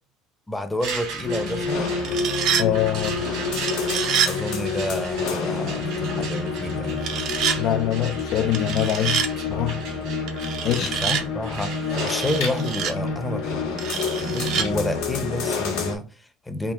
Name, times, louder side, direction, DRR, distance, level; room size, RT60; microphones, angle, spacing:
voice 1, 0.5-2.0 4.2-7.1 10.4-16.7, left 1 dB, 10° left, 0.6 m, -30 dB
sound 1, 0.8-12.4, right 5 dB, 75° right, 1.5 m, -37 dB
sound 2, 1.2-16.0, left 4 dB, 85° left, 1.1 m, -28 dB
sound 3, 1.9-2.7 3.7-4.3 7.0-7.6 8.5-9.3 10.3-11.2 12.1-12.9 13.8-14.7, right 7 dB, 60° right, 0.6 m, -26 dB
voice 2, 2.6-3.2 7.6-9.2 9.5-9.8 10.6-10.9, left 11 dB, 60° left, 0.3 m, -24 dB
3.6 x 2.3 x 3.6 m
supercardioid pair, 100°, 0 cm